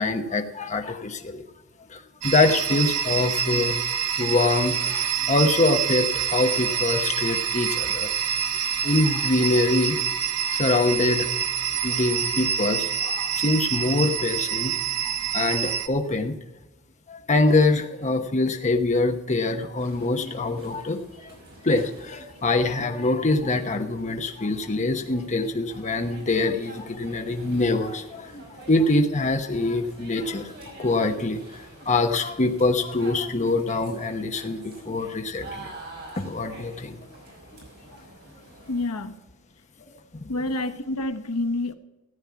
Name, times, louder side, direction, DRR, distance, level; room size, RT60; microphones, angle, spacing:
voice 1, 0.0-1.4 1.9-3.8 4.2-8.1 8.8-10.0 10.4-11.3 11.8-14.8 15.0-16.4 17.1-21.3 21.6-30.5 30.8-35.7 36.2-37.0 40.2-40.3, left 2 dB, 30° left, 5 dB, 0.9 m, -24 dB
sound 1, 2.2-15.9, right 8 dB, 85° right, 0.9 m, -26 dB
sound 2, 19.7-38.8, right 2 dB, 45° right, 5.3 m, -47 dB
voice 2, 38.7-39.2 40.3-41.7, left 2 dB, 80° left, 7 dB, 1.0 m, -28 dB
14.0 x 8.9 x 5.8 m, 1.0 s
head